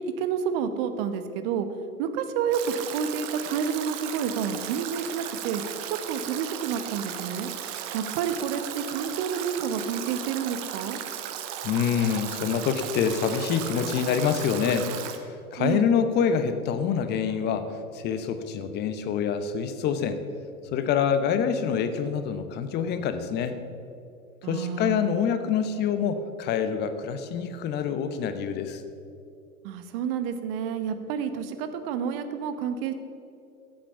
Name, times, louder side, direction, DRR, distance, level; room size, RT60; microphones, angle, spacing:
voice 1, 0.0-1.7 2.0-5.6 5.9-7.5 7.9-11.0 15.6-15.9 24.4-25.1 29.6-32.9, right 7 dB, 35° right, 9 dB, 1.1 m, -29 dB
Stream / Drip / Trickle dribble, 2.5-15.2, right 10 dB, 15° right, 0.4 m, -36 dB
voice 2, 11.6-20.2 20.7-23.5 24.5-28.8, left 7 dB, 20° left, 10 dB, 0.8 m, -26 dB
14.0 x 7.9 x 7.0 m, 2.6 s
figure-of-eight pair, 100°, 46 cm